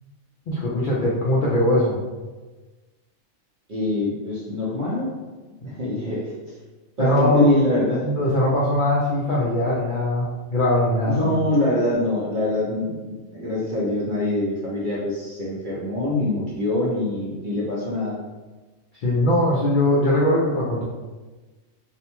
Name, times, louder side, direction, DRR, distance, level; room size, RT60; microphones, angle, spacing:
voice 1, 0.5-2.0 5.6-5.7 7.0-7.5 8.0-11.3 19.0-20.8, left 1 dB, 75° left, -5 dB, 0.4 m, -21 dB
voice 2, 3.7-5.1 5.6-6.3 7.0-8.3 11.0-18.2, left 1 dB, 55° right, -6 dB, 0.6 m, -24 dB
2.6 x 2.1 x 2.9 m, 1.2 s
omnidirectional pair, 1.4 m